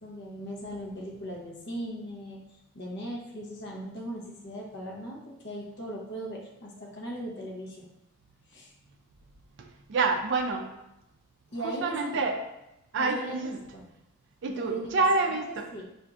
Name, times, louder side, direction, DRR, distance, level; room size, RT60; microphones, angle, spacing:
voice 1, 0.0-2.4 2.7-7.8 8.5-8.7 11.5-12.1 13.0-13.4 13.7-13.9 14.6-15.4 15.7-15.8, right 1 dB, 55° left, -2 dB, 0.7 m, -38 dB
voice 2, 9.6-10.7 11.6-12.4 12.9-13.6 14.4-15.7, right 3 dB, 55° right, 3 dB, 0.3 m, -28 dB
4.3 x 2.5 x 2.4 m, 0.88 s
head